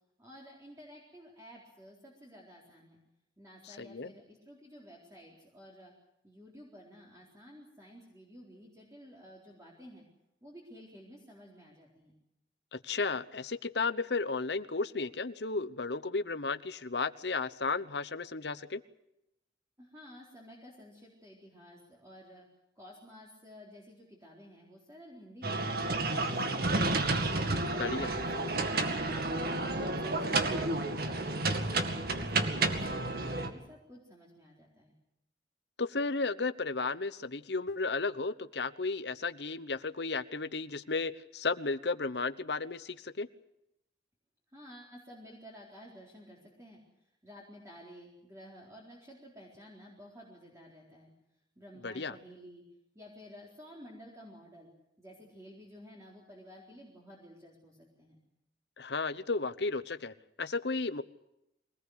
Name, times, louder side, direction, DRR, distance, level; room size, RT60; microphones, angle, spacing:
voice 1, 0.2-3.0 3.4-5.9 6.2-10.1 10.4-12.1 19.8-22.5 22.8-27.2 27.4-29.0 29.4-31.4 31.7-34.9 44.5-46.8 47.2-51.1 51.6-52.6 52.9-54.7 55.0-58.2, equal, 15° right, -3 dB, 4.2 m, -52 dB
voice 2, 3.6-4.1 12.7-18.8 27.8-28.1 35.8-43.3 51.8-52.2 58.8-61.0, left 3 dB, 70° left, 13 dB, 1.0 m, -34 dB
sound 1, 25.4-33.5, right 2 dB, 55° right, 2.2 m, -31 dB
24.0 x 19.0 x 8.1 m, 0.85 s
head